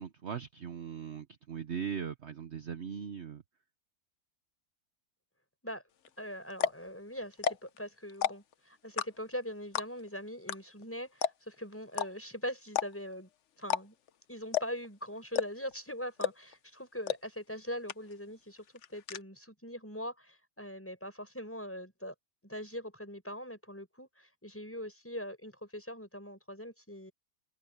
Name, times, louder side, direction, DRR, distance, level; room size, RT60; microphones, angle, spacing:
voice 1, 0.0-3.4, right 7 dB, 50° right, 1.2 m, -39 dB
sound 1, 6.1-6.2 6.5-6.9 7.3-7.8 8.1-8.5 9.0-9.4 9.7-10.1 10.5-10.6 10.8-10.9 11.2-11.6 11.9-12.1 12.7-13.1 13.6-14.1 14.5-14.9 15.3-15.7 16.2-16.5 17.1-17.2 17.5-17.6 17.9-18.3 18.6-19.2, left 9 dB, 60° left, 1.0 m, -31 dB
voice 2, 6.2-13.3 13.6-13.9 14.3-18.6 18.9-22.1 22.4-27.1, equal, 10° left, 5.8 m, -42 dB
omnidirectional pair, 1.6 m